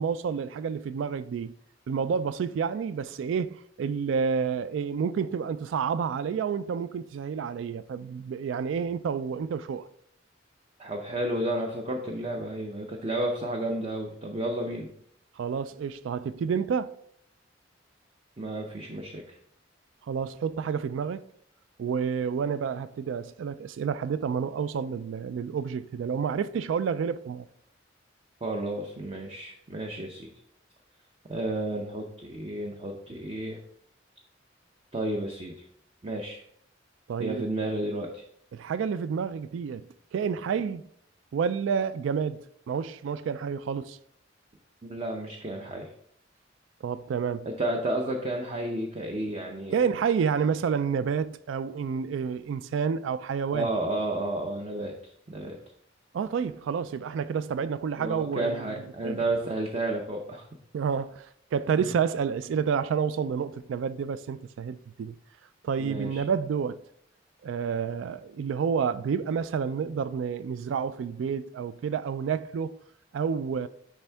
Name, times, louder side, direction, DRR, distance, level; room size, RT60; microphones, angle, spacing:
voice 1, 0.0-1.5 1.9-9.9 15.4-16.9 20.1-21.3 21.8-27.5 37.1-37.5 38.5-39.9 40.1-40.9 41.3-42.4 42.7-44.0 46.8-47.5 49.7-53.7 56.1-59.2 60.7-65.2 65.6-66.8 67.4-72.7 73.1-73.7, right 6 dB, 75° right, 0.3 m, -29 dB
voice 2, 10.8-14.9 18.4-19.4 28.4-30.3 31.3-33.6 34.9-35.6 36.0-36.4 37.2-38.2 44.8-45.9 47.5-49.8 53.5-55.6 58.0-60.5 61.8-61.9 65.8-66.2, right 1 dB, 30° right, 0.6 m, -32 dB
10.0 x 3.5 x 3.4 m
head